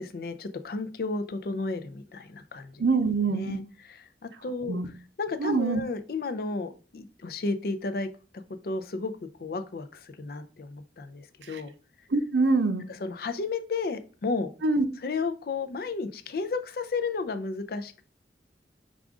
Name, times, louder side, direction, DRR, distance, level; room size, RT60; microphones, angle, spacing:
voice 1, 0.0-2.8 3.3-4.9 5.2-9.1 9.4-11.7 12.9-14.5 15.0-18.0, left 3 dB, 55° left, 10 dB, 0.4 m, -33 dB
voice 2, 2.8-3.6 4.7-4.9 5.4-5.8 11.5-11.6 12.1-12.9 14.6-14.8, right 3 dB, 80° right, 8 dB, 0.6 m, -24 dB
4.9 x 2.4 x 3.6 m, 0.36 s
head